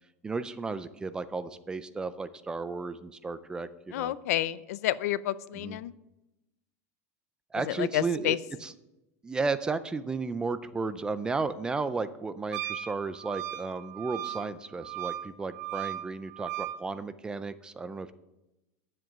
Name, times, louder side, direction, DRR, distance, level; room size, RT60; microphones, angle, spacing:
voice 1, 0.2-4.1 5.6-5.8 7.5-8.4 8.6-8.7 9.2-18.1, right 4 dB, 10° right, 14 dB, 0.3 m, -33 dB
voice 2, 3.9-5.9 7.6-8.4, left 13 dB, 75° left, 17 dB, 0.5 m, -30 dB
Wind instrument woodwind instrument, 12.5-16.8, right 13 dB, 90° right, 0.9 m, -37 dB
10.5 x 7.5 x 6.2 m, 0.95 s
supercardioid pair, 165°, 8 cm